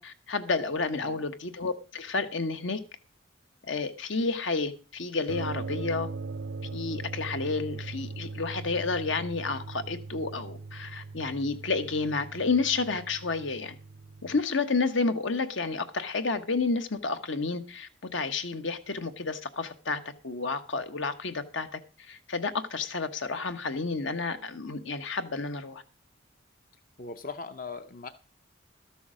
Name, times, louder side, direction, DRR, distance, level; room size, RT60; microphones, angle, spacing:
voice 1, 0.0-2.8 3.7-6.1 6.7-13.8 14.2-21.8 22.1-25.8, left 4 dB, 75° left, 1.2 m, -30 dB
sound 1, 5.3-14.4, right 3 dB, 70° right, 0.5 m, -39 dB
voice 2, 27.0-28.1, left 4 dB, 45° left, 0.6 m, -39 dB
13.0 x 7.0 x 6.2 m
head